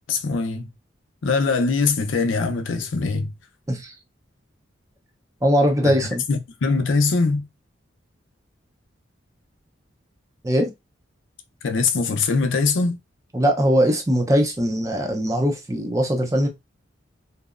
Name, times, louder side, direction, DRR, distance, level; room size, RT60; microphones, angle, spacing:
voice 1, 0.1-0.7 1.2-3.3 5.8-6.0 6.3-7.5 11.6-13.0, left 4 dB, 80° left, 0.5 m, -22 dB
voice 2, 5.4-6.2 10.4-10.7 13.3-16.5, equal, 15° right, 0.4 m, -20 dB
2.7 x 2.0 x 2.4 m
head